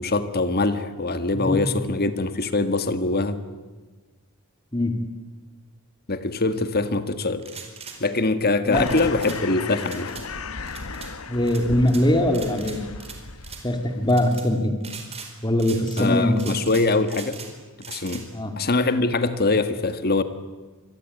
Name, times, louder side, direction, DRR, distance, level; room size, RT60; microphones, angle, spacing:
voice 1, 0.0-3.4 6.1-7.5 8.0-10.1 16.0-17.4 17.9-18.3 18.6-20.2, left 3 dB, 45° left, 10 dB, 1.8 m, -23 dB
sound 1, 7.4-8.0 8.9-9.4 9.8-10.2 10.7-11.1 11.5-12.0 12.3-13.2 13.4-13.6 14.1-14.4 14.8-15.3 15.6-16.1 16.4-17.5 17.8-18.2, right 6 dB, 30° right, 4.6 m, -40 dB
sound 2, 8.7-14.1, left 4 dB, 70° left, 1.4 m, -35 dB
voice 2, 8.7-9.0 11.3-12.8 13.6-14.7 15.4-16.6 18.3-18.5, left 1 dB, 20° left, 5 dB, 2.4 m, -22 dB
26.5 x 22.0 x 9.6 m, 1.3 s
head